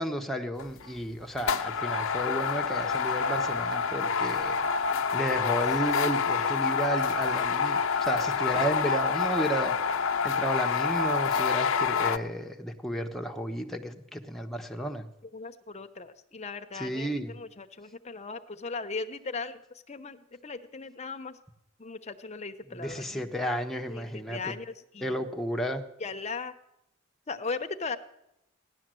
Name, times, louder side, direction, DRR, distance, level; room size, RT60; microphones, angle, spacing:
voice 1, 0.0-4.6 5.1-9.8 10.2-15.1 16.7-17.3 22.7-24.6 25.0-25.8, equal, ahead, 3 dB, 1.0 m, -32 dB
sound 1, 0.6-0.9 1.4-12.2, left 5 dB, 80° left, 0.7 m, -27 dB
voice 2, 15.3-19.6 19.9-21.4 21.8-23.3 23.9-25.2 26.0-26.5 27.3-28.0, left 4 dB, 35° left, 8 dB, 0.9 m, -38 dB
16.0 x 11.5 x 7.7 m, 0.85 s
head